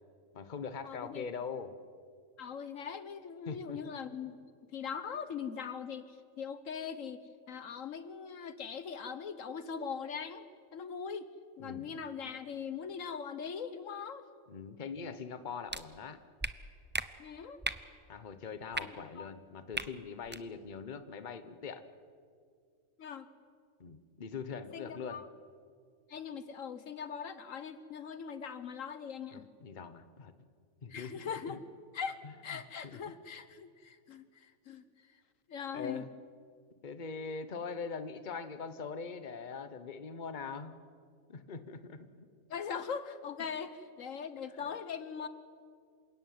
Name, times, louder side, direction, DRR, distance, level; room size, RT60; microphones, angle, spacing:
voice 1, 0.3-1.7 3.5-3.8 11.6-12.0 14.5-16.2 18.1-21.8 23.8-25.2 29.3-30.3 30.8-31.6 32.2-32.6 32.9-33.0 35.7-36.1 36.8-40.7 41.3-42.3, left 5 dB, 35° left, 11 dB, 1.2 m, -42 dB
voice 2, 0.8-1.3 2.4-4.4 4.7-7.2 7.5-11.3 11.6-14.2 17.2-17.6 18.8-19.3 23.0-23.3 24.7-25.3 26.1-29.4 30.9-31.6 31.9-34.8 35.5-36.0 42.5-45.3, left 6 dB, 70° left, 12 dB, 1.3 m, -41 dB
sound 1, 15.7-15.8 16.4-16.5 16.9-17.1 17.6-17.8 18.7-18.8 19.7-19.9 20.2-20.4, right 2 dB, 15° right, 0.4 m, -35 dB
27.5 x 17.0 x 9.5 m, 2.2 s
omnidirectional pair, 1.4 m